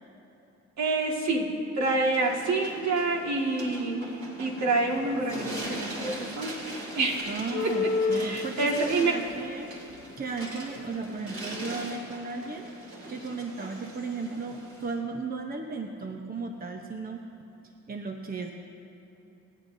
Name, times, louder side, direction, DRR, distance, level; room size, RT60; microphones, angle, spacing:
voice 1, 0.8-1.5 1.8-7.3 7.6-9.1, right 3 dB, 65° right, -1 dB, 2.1 m, -28 dB
sound 1, 2.0-15.0, right 2 dB, 45° right, 3.2 m, -41 dB
sound 2, 4.9-6.0 6.5-11.8, left 4 dB, 70° left, 1.0 m, -34 dB
voice 2, 7.3-9.7 10.2-12.7 13.1-17.2 17.9-18.5, right 4 dB, 30° right, 3 dB, 0.9 m, -35 dB
27.5 x 10.0 x 2.7 m, 3.0 s
cardioid pair, 90°, 30 cm